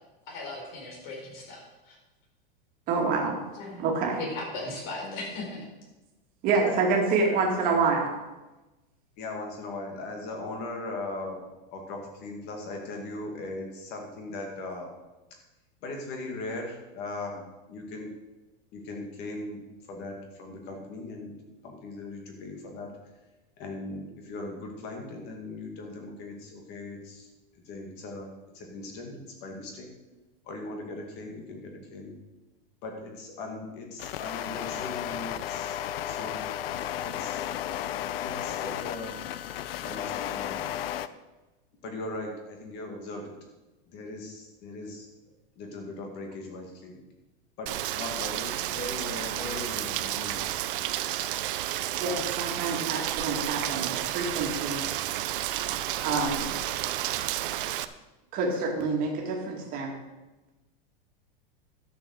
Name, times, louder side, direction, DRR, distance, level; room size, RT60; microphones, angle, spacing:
voice 1, 0.3-2.0 3.5-5.6, left 2 dB, 55° left, -1 dB, 5.0 m, -38 dB
voice 2, 2.9-3.4 3.8-4.2 6.4-8.1 52.0-54.8 56.0-56.6 58.3-59.9, right 4 dB, 30° right, 0 dB, 2.3 m, -27 dB
voice 3, 6.6-7.8 9.2-11.4 11.7-14.9 15.8-17.3 17.7-18.1 18.7-19.6 19.9-21.3 21.6-22.9 23.6-27.3 27.6-29.9 30.4-32.2 32.8-35.8 36.0-36.4 37.0-37.4 38.2-39.1 39.8-40.8 41.8-43.3 43.9-45.1 45.6-47.0 47.6-50.6, left 2 dB, 35° left, 2 dB, 2.4 m, -39 dB
sound 1, 34.0-41.1, left 11 dB, 80° left, 0.7 m, -33 dB
Rain, 47.7-57.8, right 13 dB, 65° right, 0.7 m, -31 dB
12.0 x 7.1 x 6.6 m, 1.1 s
supercardioid pair, 170°, 29 cm